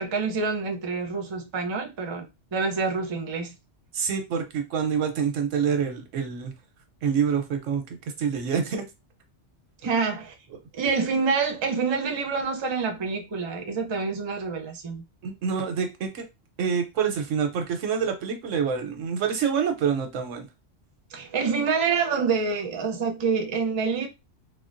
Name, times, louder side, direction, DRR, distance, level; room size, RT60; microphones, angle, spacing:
voice 1, 0.0-3.5 9.8-10.3 10.7-15.0 21.1-24.1, right 5 dB, 35° right, 0.4 m, -27 dB
voice 2, 3.9-6.5 7.0-8.9 15.2-16.2 16.6-20.5, right 7 dB, 90° right, 1.0 m, -27 dB
3.6 x 2.2 x 2.5 m
omnidirectional pair, 1.2 m